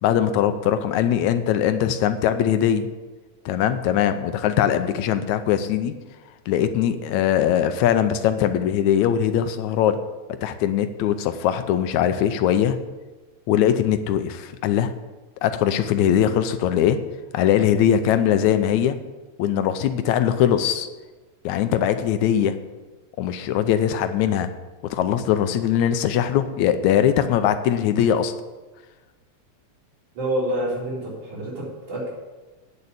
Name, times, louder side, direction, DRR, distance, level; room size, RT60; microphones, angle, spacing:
voice 1, 0.0-2.9 3.5-5.9 6.5-10.0 10.4-12.8 13.5-14.9 15.4-17.0 17.3-19.0 19.4-20.9 21.4-22.6 23.2-24.5 24.9-28.3, left 10 dB, 85° left, 10 dB, 2.0 m, -21 dB
voice 2, 30.2-32.1, right 1 dB, 80° right, -6 dB, 5.6 m, -27 dB
9.4 x 6.9 x 8.6 m, 1.2 s
omnidirectional pair, 3.4 m